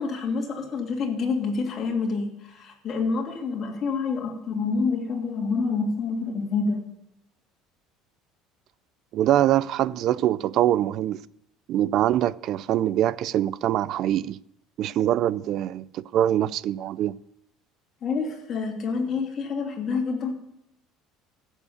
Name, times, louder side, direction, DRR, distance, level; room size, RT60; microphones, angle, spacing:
voice 1, 0.0-6.8 18.0-20.3, left 4 dB, 35° left, 2.8 m, -27 dB
voice 2, 9.1-11.2 11.7-14.4 14.8-17.2, right 12 dB, 50° right, 0.4 m, -23 dB
15.5 x 7.2 x 7.0 m
cardioid pair, 155°, 0 cm